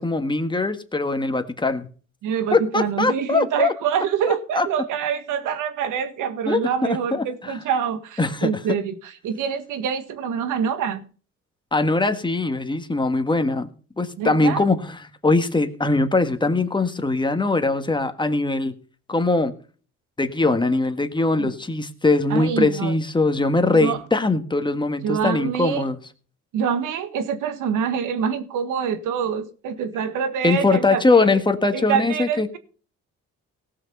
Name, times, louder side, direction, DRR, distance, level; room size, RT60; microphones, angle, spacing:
voice 1, 0.0-1.9 2.5-3.7 4.5-4.7 6.5-7.2 8.2-8.5 11.7-13.7 14.0-18.7 19.1-19.5 20.2-26.0 30.4-32.5, left 3 dB, 15° left, 1.6 m, -21 dB
voice 2, 2.2-11.0 14.2-14.6 21.4-21.5 22.3-23.0 23.7-24.0 25.0-25.8 26.5-31.4 31.7-32.6, right 7 dB, 90° right, 1.7 m, -25 dB
18.0 x 6.2 x 5.5 m
cardioid pair, 90°, 30 cm